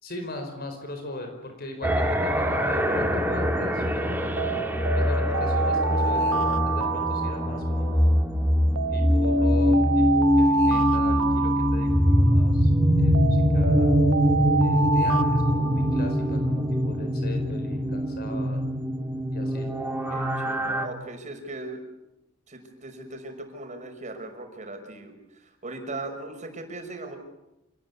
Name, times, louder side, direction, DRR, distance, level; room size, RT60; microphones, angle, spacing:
voice 1, 0.0-4.4 4.9-8.2 8.9-12.7 13.0-13.9 14.6-18.6 19.3-19.7, left 1 dB, 50° left, 5 dB, 4.8 m, -38 dB
sound 1, 1.8-20.9, equal, 10° right, 3.1 m, -23 dB
Alarm, 4.4-8.1 8.7-12.5 13.1-16.4, right 3 dB, 75° right, 1.4 m, -28 dB
voice 2, 20.1-21.8 22.5-25.1 25.4-27.2, right 2 dB, 35° right, 4 dB, 6.0 m, -38 dB
28.0 x 20.5 x 9.8 m, 0.91 s
head